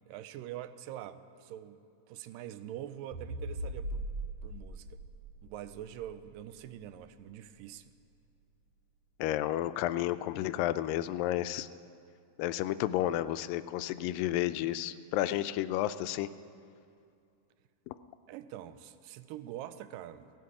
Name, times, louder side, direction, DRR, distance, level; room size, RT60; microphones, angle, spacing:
voice 1, 0.1-4.1 4.4-5.0 5.4-7.9 11.2-11.4 18.3-20.3, right 12 dB, 85° right, 12 dB, 2.2 m, -44 dB
sound 1, 3.1-7.6, right 1 dB, 55° right, 2.2 m, -41 dB
voice 2, 9.2-11.7 12.4-16.3 17.9-18.0, left 13 dB, 90° left, 13 dB, 2.3 m, -31 dB
17.0 x 17.0 x 4.8 m, 2.4 s
omnidirectional pair, 3.9 m